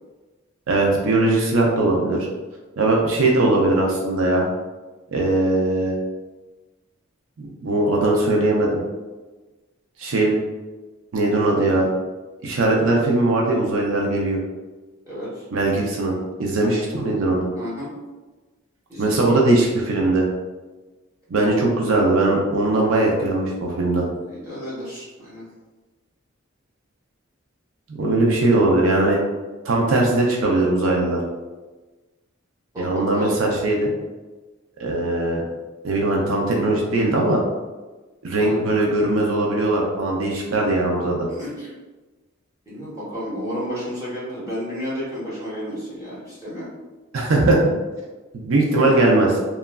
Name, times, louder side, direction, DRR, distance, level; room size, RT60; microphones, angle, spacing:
voice 1, 0.7-2.2 2.8-4.5 5.1-6.0 7.4-8.7 10.0-10.4 11.1-11.9 12.4-14.4 15.5-16.1 16.4-17.5 19.0-20.2 21.3-24.0 27.9-29.2 29.6-31.2 32.8-33.9 34.8-35.4 35.8-37.4 38.2-41.3 47.1-47.6 48.3-49.3, right 2 dB, 80° right, -1 dB, 0.5 m, -20 dB
voice 2, 15.1-15.4 17.5-17.9 18.9-19.4 24.3-25.4 32.7-33.4 38.4-38.6 41.3-41.7 42.7-46.7 48.7-48.9, equal, 15° right, -9 dB, 1.0 m, -32 dB
3.0 x 2.3 x 2.2 m, 1.2 s
head